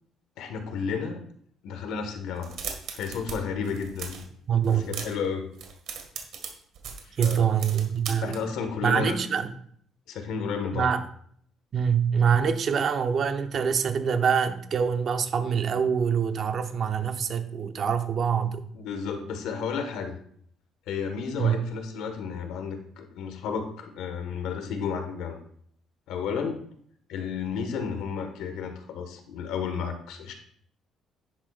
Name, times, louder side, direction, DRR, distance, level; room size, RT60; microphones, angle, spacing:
voice 1, 0.4-1.2 1.6-2.5 2.9-4.2 4.7-5.5 7.0-7.5 8.2-9.2 10.1-10.9 18.7-20.1 20.9-25.4 26.1-26.6 27.1-30.3, left 6 dB, 85° left, 6 dB, 1.6 m, -32 dB
sound 1, 2.4-3.4 3.6-4.3 4.6-5.3 5.5-8.4, right 7 dB, 70° right, 2.0 m, -37 dB
voice 2, 4.5-4.9 7.2-8.4 8.8-9.5 10.7-11.0 11.7-18.7 21.4-21.6, right 7 dB, 45° right, 8 dB, 0.9 m, -25 dB
10.5 x 10.5 x 2.5 m, 0.62 s
cardioid pair, 130°, 0 cm